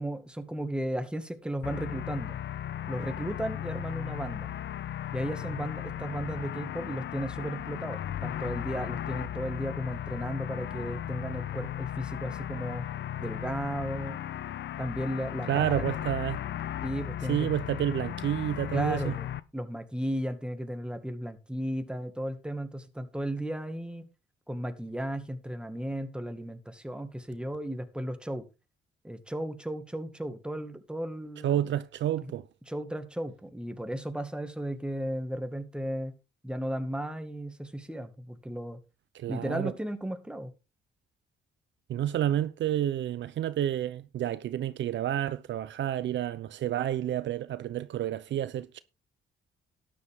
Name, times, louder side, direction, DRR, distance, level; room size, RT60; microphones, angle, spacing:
voice 1, 0.0-2.4 2.9-4.6 5.1-12.9 13.2-14.2 14.8-15.9 16.8-17.5 18.7-24.1 24.5-28.4 29.0-31.7 32.2-32.3 32.7-36.1 36.4-38.8 39.3-40.5, right 1 dB, 5° right, 2.1 m, -35 dB
sound 1, 1.6-19.4, left 11 dB, 65° left, 0.8 m, -36 dB
voice 2, 15.5-16.4 17.3-19.1 31.4-32.4 39.1-39.7 41.9-48.8, right 11 dB, 70° right, 0.7 m, -30 dB
12.5 x 10.0 x 3.7 m
cardioid pair, 90°, 20 cm